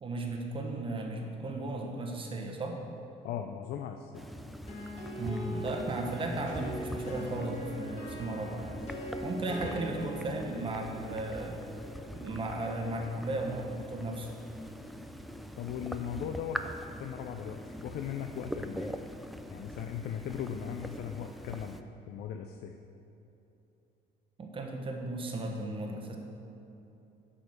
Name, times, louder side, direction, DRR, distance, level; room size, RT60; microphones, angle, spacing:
voice 1, 0.0-2.8 5.2-8.8 9.2-11.6 12.1-14.3 24.4-26.2, right 2 dB, 30° right, 2 dB, 1.2 m, -35 dB
voice 2, 3.2-4.2 9.4-9.8 15.6-16.6 17.0-19.0 19.5-21.8 22.1-22.8, left 9 dB, 65° left, 5 dB, 0.5 m, -38 dB
sound 1, 4.1-21.8, equal, ahead, 0.4 m, -43 dB
sound 2, 4.7-14.3, left 1 dB, 40° left, 2.2 m, -42 dB
8.5 x 5.1 x 6.3 m, 2.9 s
cardioid pair, 110°, 17 cm